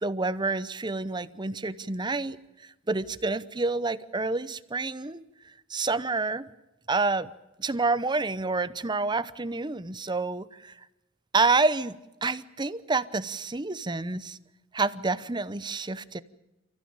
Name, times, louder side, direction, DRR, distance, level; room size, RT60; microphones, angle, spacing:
voice 1, 0.0-6.5 6.9-7.3 7.6-10.7 11.3-14.4 14.7-16.2, right 3 dB, 20° right, 16 dB, 0.8 m, -28 dB
29.5 x 15.0 x 8.8 m, 0.98 s
head